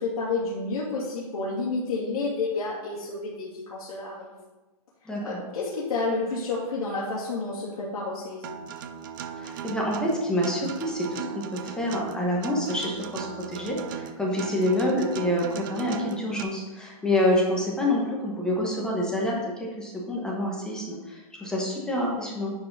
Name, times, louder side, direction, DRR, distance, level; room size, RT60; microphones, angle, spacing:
voice 1, 0.0-4.3 5.2-8.5, left 3 dB, 80° left, -7 dB, 2.5 m, -30 dB
Acoustic guitar, 8.4-16.4, right 8 dB, 35° right, 0.4 m, -37 dB
voice 2, 9.4-22.5, left 1 dB, 5° left, -2 dB, 1.0 m, -27 dB
9.9 x 4.8 x 5.3 m, 1.2 s
supercardioid pair, 175°, 19 cm